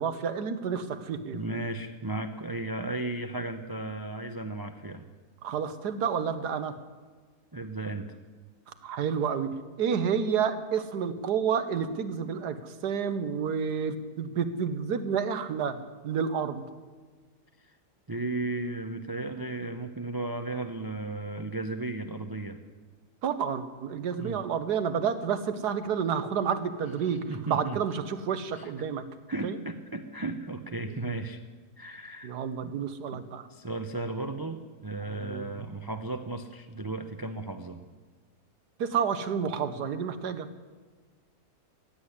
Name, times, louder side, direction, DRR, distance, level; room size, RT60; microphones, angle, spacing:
voice 1, 0.0-1.4 5.4-6.7 8.8-9.5 9.8-15.8 16.0-16.6 23.2-29.0 29.4-29.6 32.2-33.5 35.2-35.5 38.8-40.5, right 7 dB, 80° right, 10 dB, 1.6 m, -30 dB
voice 2, 1.3-5.1 7.5-8.1 18.1-22.6 24.2-24.4 27.1-27.8 28.5-28.7 29.3-31.4 31.8-32.3 32.6-32.7 33.1-33.2 33.5-37.8, right 2 dB, 30° right, 6 dB, 0.4 m, -35 dB
16.0 x 8.3 x 9.8 m, 1.4 s
omnidirectional pair, 1.7 m